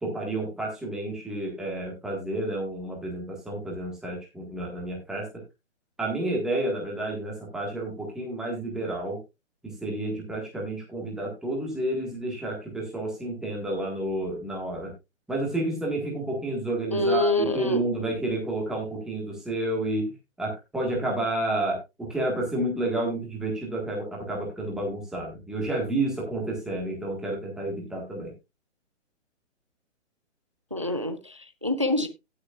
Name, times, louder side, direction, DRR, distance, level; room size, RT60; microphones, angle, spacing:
voice 1, 0.0-5.3 6.0-9.2 9.6-14.9 15.3-28.3, right 1 dB, ahead, 1.5 m, -30 dB
voice 2, 16.9-17.8 30.7-32.1, left 2 dB, 25° right, 0.4 m, -26 dB
17.5 x 6.4 x 2.4 m
hypercardioid pair, 175°, 38 cm